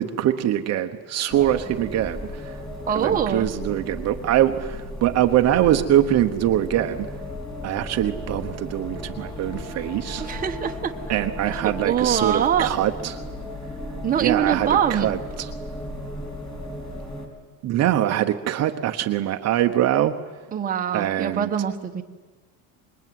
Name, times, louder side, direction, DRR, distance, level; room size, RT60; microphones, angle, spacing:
voice 1, 0.0-2.6 2.9-7.1 7.6-10.3 11.1-13.2 14.1-15.5 17.6-20.2 20.9-21.5, right 12 dB, 40° right, 6 dB, 1.0 m, -23 dB
sound 1, 1.3-17.3, left 1 dB, 10° left, 4.5 m, -35 dB
voice 2, 2.9-3.5 10.2-10.9 11.8-12.7 14.0-15.1 20.5-22.0, right 8 dB, 20° right, 4 dB, 1.2 m, -23 dB
26.0 x 21.5 x 9.4 m, 1.3 s
cardioid pair, 160°, 40 cm